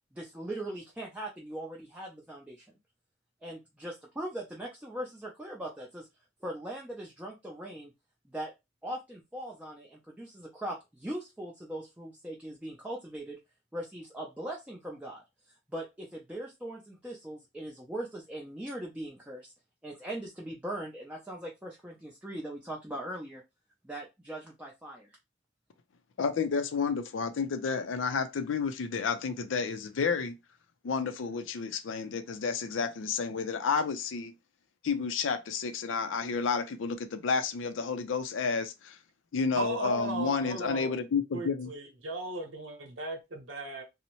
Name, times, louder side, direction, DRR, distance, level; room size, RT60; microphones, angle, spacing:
voice 1, 0.1-2.7 3.4-6.1 6.4-7.9 8.2-8.5 8.8-13.4 13.7-15.2 15.7-19.5 19.8-23.4 23.8-25.1, right 1 dB, 5° right, 0.4 m, -40 dB
voice 2, 26.2-30.4 30.8-34.3 34.8-39.0 39.3-41.7, left 5 dB, 85° left, 0.4 m, -31 dB
voice 3, 39.5-41.0 41.3-43.8, right 2 dB, 75° right, 0.9 m, -37 dB
2.7 x 2.0 x 2.9 m
head